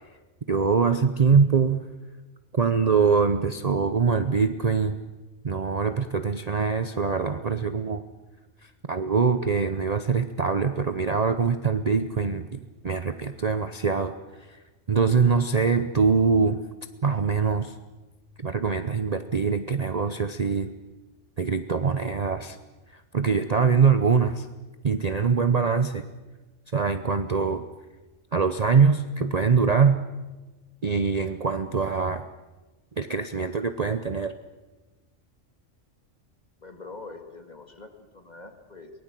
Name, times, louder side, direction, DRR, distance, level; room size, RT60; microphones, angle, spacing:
voice 1, 0.5-1.9 2.5-5.0 5.4-8.0 8.6-14.1 14.5-14.6 14.9-16.6 17.0-17.7 18.4-20.7 21.4-22.6 22.9-24.5 24.8-26.0 26.7-27.6 28.3-30.0 30.8-32.3 33.0-34.3, right 5 dB, 35° right, 9 dB, 0.7 m, -23 dB
voice 2, 36.6-38.9, left 3 dB, 35° left, 5 dB, 2.3 m, -44 dB
23.5 x 19.5 x 7.6 m, 1.2 s
omnidirectional pair, 1.3 m